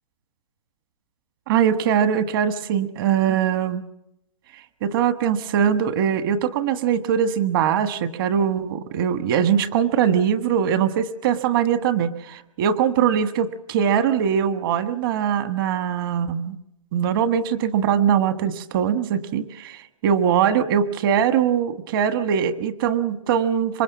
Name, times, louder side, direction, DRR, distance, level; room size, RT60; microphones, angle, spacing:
voice 1, 1.5-3.8 4.8-16.6 16.9-23.8, right 8 dB, 40° right, 11 dB, 1.3 m, -21 dB
25.5 x 23.0 x 7.2 m, 0.88 s
hypercardioid pair, 155°, 18 cm